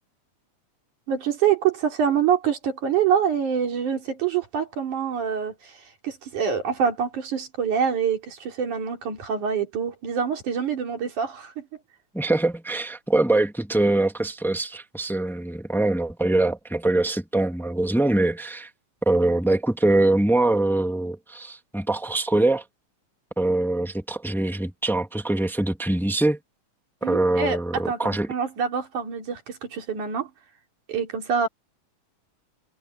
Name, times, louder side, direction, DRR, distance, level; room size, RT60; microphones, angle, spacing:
voice 1, 1.1-11.7 27.0-30.3 30.9-31.5, right 7 dB, 85° right, 4.9 m, -26 dB
voice 2, 12.1-18.7 19.0-22.6 23.4-26.4 27.0-28.3, right 2 dB, ahead, 1.4 m, -23 dB
omnidirectional pair, 3.4 m